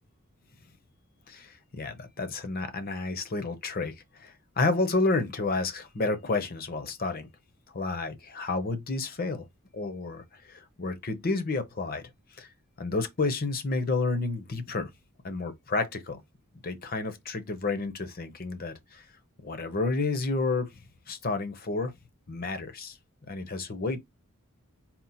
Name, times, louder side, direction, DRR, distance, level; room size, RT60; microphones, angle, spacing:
voice 1, 1.3-7.3 7.7-9.5 9.7-12.1 12.4-12.5 12.8-14.9 15.2-16.2 16.6-19.1 19.4-21.9 22.3-23.0 23.3-24.0, left 3 dB, 40° left, 0.7 m, -30 dB
4.4 x 2.0 x 4.0 m
head